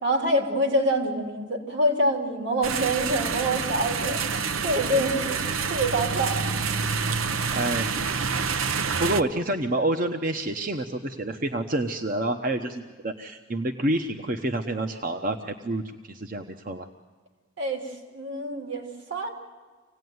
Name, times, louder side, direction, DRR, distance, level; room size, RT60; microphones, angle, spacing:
voice 1, 0.0-4.2 4.6-5.4 5.7-6.4 17.6-19.3, right 1 dB, 65° right, 2 dB, 3.3 m, -26 dB
sound 1, 2.6-9.2, right 5 dB, 85° right, 0.8 m, -27 dB
voice 2, 7.5-8.0 9.0-16.9, right 1 dB, 40° right, 5 dB, 0.9 m, -28 dB
26.5 x 17.5 x 9.5 m, 1.5 s
head